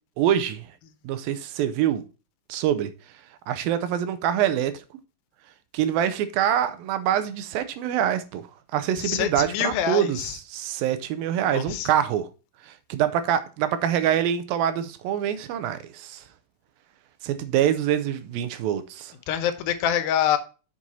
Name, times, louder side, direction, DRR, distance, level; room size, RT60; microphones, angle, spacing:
voice 1, 0.2-0.7 1.0-2.0 2.5-2.9 3.5-4.8 5.7-8.4 8.7-10.2 10.5-12.3 12.6-16.2 17.2-19.1, right 10 dB, 85° right, 2.5 m, -25 dB
voice 2, 9.0-10.3 11.4-11.9 19.3-20.4, left 10 dB, 80° left, 2.7 m, -25 dB
7.7 x 5.5 x 4.2 m
omnidirectional pair, 4.2 m